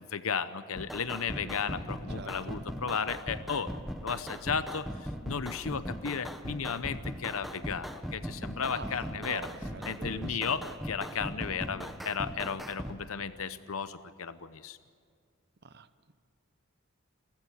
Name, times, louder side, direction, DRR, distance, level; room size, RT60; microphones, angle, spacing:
voice 1, 0.0-3.7 4.0-9.5 9.8-14.8, left 6 dB, 80° left, 13 dB, 0.8 m, -34 dB
sound 1, 0.7-13.0, equal, ahead, 1.1 m, -39 dB
voice 2, 1.4-1.8 2.1-2.6 8.7-10.7 15.6-15.9, right 3 dB, 50° right, 13 dB, 0.8 m, -45 dB
28.5 x 15.0 x 8.6 m, 2.1 s
head